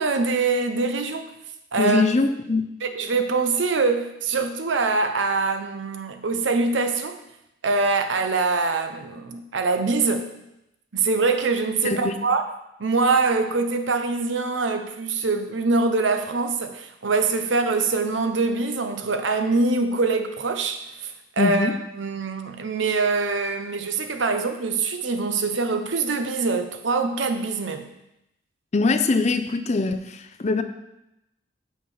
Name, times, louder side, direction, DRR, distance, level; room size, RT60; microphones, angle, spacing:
voice 1, 0.0-1.3 1.7-2.0 2.8-7.2 7.6-10.3 10.9-12.4 12.8-21.1 21.4-27.9, right 3 dB, 70° right, 0.8 m, -24 dB
voice 2, 1.8-2.7 11.8-12.2 21.4-21.8 28.7-30.6, left 3 dB, 35° left, 0.5 m, -22 dB
6.6 x 5.6 x 5.5 m
head